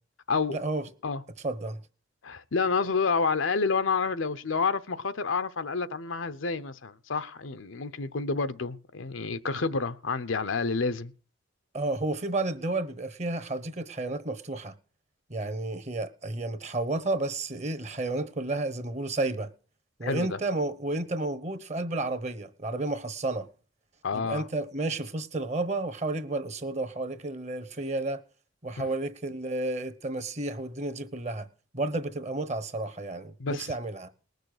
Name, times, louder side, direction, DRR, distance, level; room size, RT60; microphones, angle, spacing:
voice 1, 0.5-0.9 1.4-1.8 11.7-14.7 15.3-19.5 20.0-23.5 24.1-28.2 28.6-31.5 31.7-34.1, right 2 dB, 35° right, 1.1 m, -31 dB
voice 2, 2.2-11.1 20.0-20.4 24.0-24.5 33.4-33.7, left 4 dB, 80° left, 0.8 m, -29 dB
19.5 x 6.7 x 6.6 m
head